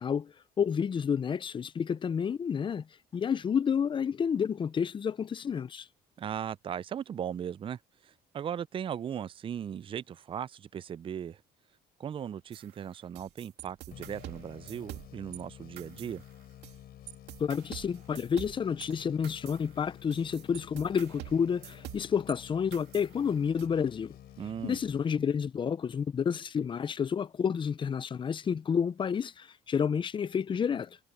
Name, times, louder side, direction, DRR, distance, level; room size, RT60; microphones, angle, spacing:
voice 1, 0.0-2.9 3.1-5.9 17.4-24.2 24.6-31.0, left 7 dB, 30° left, 0.5 m, -30 dB
voice 2, 6.2-7.8 8.0-11.4 12.0-16.2 24.4-24.8, right 9 dB, 30° right, 0.4 m, -38 dB
sound 1, 12.5-15.4 15.8-16.8 17.1-22.4 22.7-23.7, right 15 dB, 85° right, 2.2 m, -47 dB
sound 2, 13.9-25.6, left 12 dB, 65° left, 7.7 m, -51 dB
cardioid pair, 110°, 17 cm